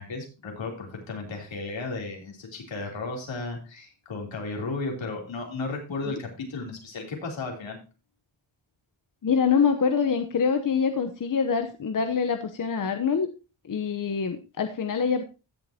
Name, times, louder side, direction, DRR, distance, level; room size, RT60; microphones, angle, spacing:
voice 1, 0.0-7.8, left 3 dB, 75° left, 1 dB, 3.6 m, -34 dB
voice 2, 9.2-13.3 13.7-15.2, left 6 dB, 45° left, 7 dB, 0.9 m, -25 dB
16.0 x 7.4 x 2.9 m, 0.31 s
cardioid pair, 95°, 46 cm